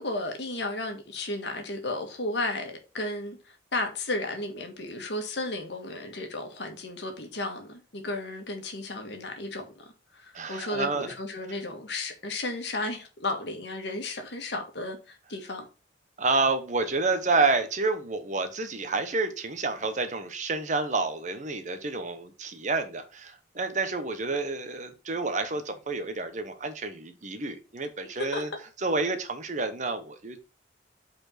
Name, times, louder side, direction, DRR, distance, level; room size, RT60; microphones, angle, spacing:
voice 1, 0.0-15.7 28.1-28.5, left 2 dB, 65° left, 1.6 m, -34 dB
voice 2, 10.3-11.1 16.2-28.5 28.8-30.4, right 3 dB, 40° right, 0.9 m, -29 dB
5.4 x 4.4 x 5.7 m
head